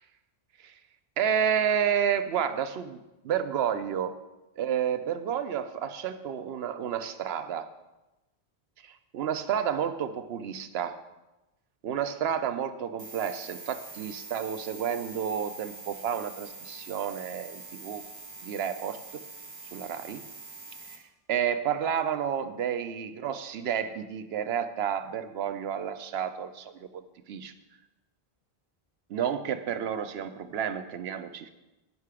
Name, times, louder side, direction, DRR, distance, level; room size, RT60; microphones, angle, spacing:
voice 1, 1.2-3.0 3.2-4.2 4.6-7.7 8.8-11.0 11.8-18.0 18.4-19.0 19.7-20.2 20.9-21.0 21.3-27.0 27.3-27.5 29.1-31.5, right 8 dB, 90° right, 10 dB, 0.9 m, -30 dB
sound 1, 13.0-21.0, right 3 dB, 50° right, 1.6 m, -45 dB
11.0 x 5.6 x 4.8 m, 1.0 s
omnidirectional pair, 1.0 m